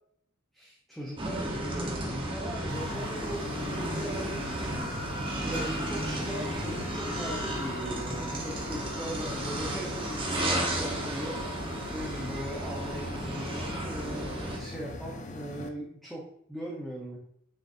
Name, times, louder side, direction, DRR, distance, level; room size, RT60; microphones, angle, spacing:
voice 1, 0.5-4.5 5.4-11.6 11.9-16.2 16.5-17.2, right 1 dB, ahead, -4 dB, 1.1 m, -39 dB
sound 1, 1.2-14.6, right 1 dB, 25° right, 1.4 m, -33 dB
sound 2, 2.7-15.7, left 2 dB, 35° left, 0.7 m, -42 dB
sound 3, 5.5-7.2, right 1 dB, 15° left, 2.2 m, -47 dB
7.2 x 6.5 x 2.8 m, 0.69 s
head